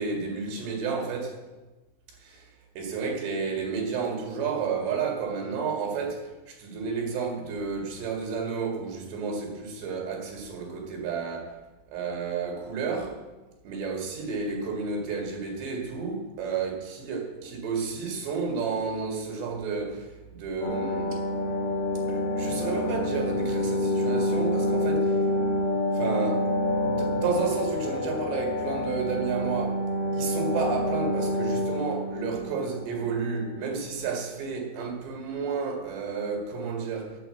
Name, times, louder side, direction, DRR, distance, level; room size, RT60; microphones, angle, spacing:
voice 1, 0.0-1.4 2.8-11.6 11.9-13.2 13.6-20.1 20.4-21.2 22.1-25.2 25.9-26.5 26.8-29.8 30.1-37.2, right 5 dB, 75° right, 4.4 m, -31 dB
sound 1, 20.6-33.7 34.0-34.1, left 1 dB, 40° left, 2.4 m, -28 dB
9.8 x 9.0 x 7.8 m
omnidirectional pair, 5.0 m